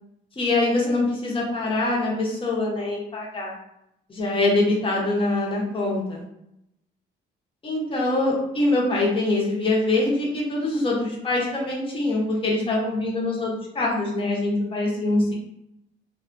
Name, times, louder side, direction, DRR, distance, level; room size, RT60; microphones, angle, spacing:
voice 1, 0.4-3.5 4.1-6.2 7.6-15.4, left 2 dB, 25° left, -3 dB, 0.8 m, -24 dB
2.3 x 2.2 x 2.5 m, 0.82 s
cardioid pair, 90°, 20 cm